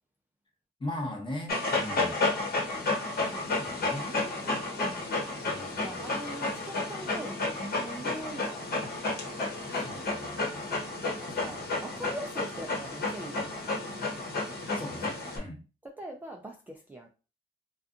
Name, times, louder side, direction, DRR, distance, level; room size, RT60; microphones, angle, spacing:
voice 1, 0.8-2.2 3.5-4.1 5.4-6.1 9.7-10.8 14.7-15.6, left 1 dB, 25° left, 0.9 m, -40 dB
Dog, 1.5-15.4, left 2 dB, 50° left, 1.1 m, -32 dB
voice 2, 3.9-5.4 5.8-8.6 11.1-13.4 16.0-17.1, right 1 dB, 10° right, 0.4 m, -42 dB
2.6 x 2.3 x 2.4 m
cardioid pair, 90°, 20 cm